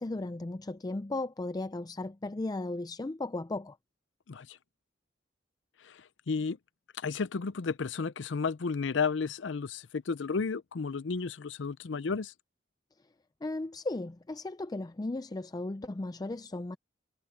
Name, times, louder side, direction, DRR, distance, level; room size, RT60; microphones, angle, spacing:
voice 1, 0.0-3.8 13.4-16.8, left 2 dB, 20° left, 0.4 m, -36 dB
voice 2, 4.3-4.6 5.8-6.6 6.9-12.3, left 5 dB, 75° left, 0.6 m, -33 dB
head